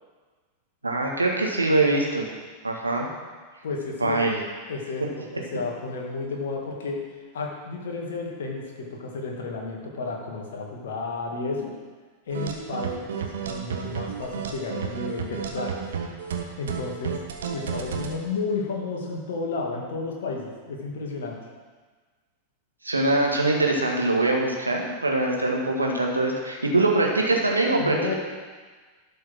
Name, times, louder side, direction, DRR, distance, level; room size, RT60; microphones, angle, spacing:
voice 1, 0.8-2.2 2.6-3.1 4.0-4.4 22.8-28.1, right 2 dB, 80° right, 0 dB, 1.6 m, -23 dB
voice 2, 3.6-4.2 4.7-7.1 7.3-11.7 12.3-15.8 16.6-17.2 17.5-21.4 27.8-28.1, left 3 dB, 60° left, 0 dB, 2.0 m, -32 dB
sound 1, 12.3-18.2, right 7 dB, 65° right, 1.2 m, -32 dB
12.0 x 5.6 x 6.0 m, 1.4 s
figure-of-eight pair, 90°, 0 cm